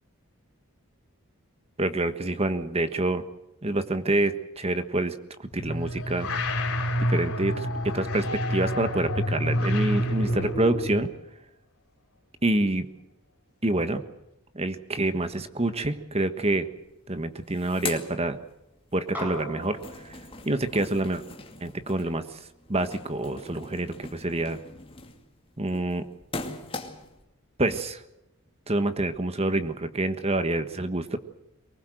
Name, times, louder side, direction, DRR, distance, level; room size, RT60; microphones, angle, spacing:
voice 1, 1.8-3.2 3.6-6.3 7.1-11.1 12.4-12.9 13.6-14.0 14.5-16.7 17.1-18.4 18.9-19.8 20.4-21.2 21.6-22.2 22.7-24.6 25.6-26.0 27.6-28.0 28.7-31.2, right 2 dB, 30° right, 10 dB, 1.4 m, -27 dB
sound 1, 5.5-11.1, equal, 80° left, 4.4 m, -28 dB
sound 2, 16.8-16.9 17.2-19.0 19.3-27.2, left 3 dB, 25° left, 2.4 m, -41 dB
sound 3, 19.1-23.8, right 1 dB, 10° right, 5.6 m, -43 dB
23.5 x 20.0 x 7.8 m, 0.90 s
head